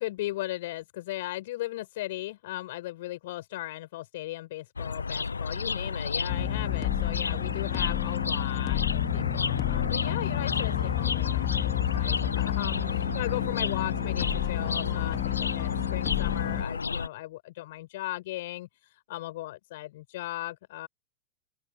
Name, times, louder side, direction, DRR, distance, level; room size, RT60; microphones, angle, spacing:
voice 1, 0.0-20.9, left 17 dB, 55° left, 6.7 m, -37 dB
sound 1, 4.8-17.1, left 5 dB, 75° left, 1.0 m, -31 dB
sound 2, 6.3-16.6, left 17 dB, 35° left, 2.8 m, -30 dB
open air
figure-of-eight pair, 90°, 0 cm